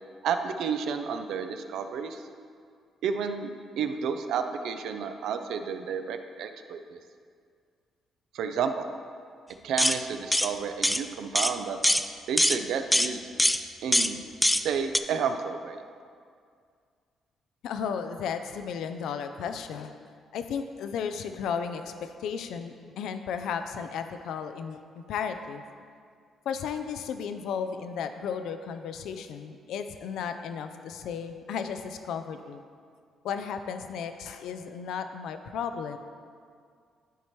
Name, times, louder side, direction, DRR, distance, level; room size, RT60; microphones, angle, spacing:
voice 1, 0.2-2.2 3.0-3.5 3.8-7.0 8.3-8.9 9.6-11.8 12.3-13.2 13.8-14.2 14.6-15.8, right 6 dB, 80° right, 7 dB, 0.5 m, -31 dB
sound 1, 9.8-10.0 10.3-10.5 10.8-11.0 11.4-11.5 11.8-12.0 12.4-12.6 12.9-13.1 13.4-13.6 13.9-14.1 14.4-14.6 14.9-15.0, left 1 dB, 5° left, 0.3 m, -22 dB
voice 2, 17.6-25.6 26.5-32.6 33.2-36.0, left 7 dB, 80° left, 8 dB, 0.4 m, -34 dB
12.5 x 4.4 x 3.1 m, 2.2 s
cardioid pair, 90°, 0 cm